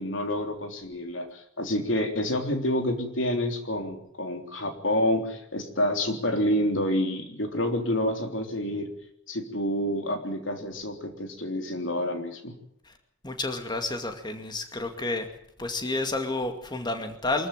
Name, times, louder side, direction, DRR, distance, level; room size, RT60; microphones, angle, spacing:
voice 1, 0.0-8.9 9.3-12.5, left 1 dB, 70° left, 5 dB, 3.4 m, -28 dB
voice 2, 13.2-15.3 15.6-17.5, left 2 dB, 20° left, 5 dB, 2.3 m, -30 dB
24.0 x 14.5 x 9.2 m, 0.71 s
head